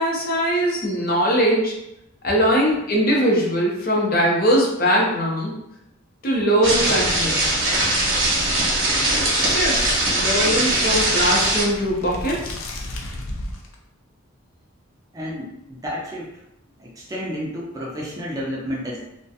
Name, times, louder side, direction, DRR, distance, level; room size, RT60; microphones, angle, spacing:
voice 1, 0.0-1.8 2.2-5.5 6.2-7.5 9.1-12.6, equal, 45° left, -2 dB, 0.6 m, -21 dB
sound 1, 6.6-11.6, right 1 dB, 70° right, 0.8 m, -21 dB
sound 2, 8.0-13.8, left 1 dB, 85° left, 0.4 m, -35 dB
voice 2, 15.1-16.4 16.8-19.0, equal, 15° right, -4 dB, 0.5 m, -31 dB
2.4 x 2.1 x 2.7 m, 0.83 s
head